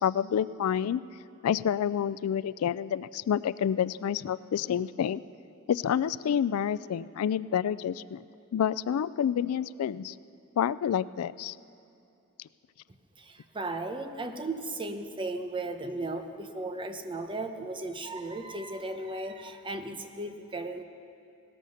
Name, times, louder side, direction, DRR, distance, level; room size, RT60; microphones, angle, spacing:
voice 1, 0.0-1.0 1.4-5.2 5.7-8.2 8.5-10.1 10.6-11.6, left 8 dB, 70° left, 18 dB, 0.3 m, -28 dB
voice 2, 13.2-20.8, right 2 dB, 20° right, 7 dB, 0.9 m, -36 dB
17.5 x 13.0 x 6.4 m, 2.6 s
head